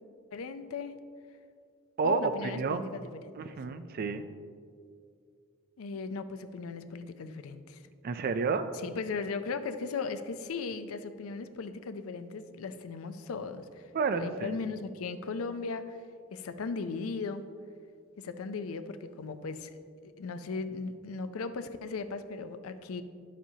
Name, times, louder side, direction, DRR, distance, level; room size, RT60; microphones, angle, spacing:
voice 1, 0.3-0.9 2.0-3.6 5.8-7.8 8.8-13.8 14.1-16.0 16.3-17.4 18.2-23.0, left 4 dB, 85° left, 11 dB, 0.4 m, -37 dB
voice 2, 2.0-2.9 3.4-4.3 8.0-8.7 13.9-14.6, right 5 dB, 45° right, 10 dB, 0.4 m, -30 dB
9.8 x 7.3 x 2.8 m, 2.2 s
head